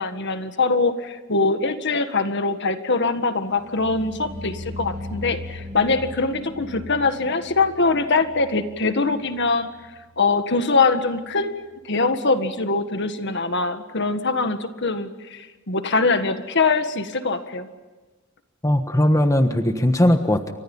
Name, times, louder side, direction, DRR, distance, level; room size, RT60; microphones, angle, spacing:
voice 1, 0.0-9.7 10.2-17.7, left 3 dB, 55° left, 9 dB, 1.7 m, -23 dB
sound 1, 3.5-10.6 10.9-11.4 11.7-11.8, left 1 dB, 35° right, 2.5 m, -38 dB
voice 2, 18.6-20.5, left 1 dB, 15° left, 7 dB, 1.3 m, -19 dB
29.5 x 25.5 x 5.6 m, 1.2 s
head